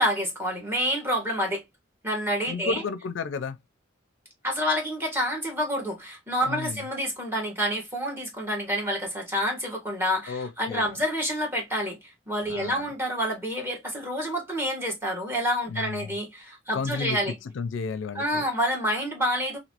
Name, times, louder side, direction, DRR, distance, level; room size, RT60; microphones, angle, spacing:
voice 1, 0.0-1.6 2.0-2.8 4.4-12.0 12.3-17.4 18.1-19.6, equal, 10° right, 1.4 m, -28 dB
voice 2, 2.5-3.6 6.5-6.8 10.3-11.0 12.5-12.9 15.7-16.1 16.7-18.5, left 4 dB, 80° left, 0.4 m, -32 dB
3.0 x 2.7 x 2.8 m
head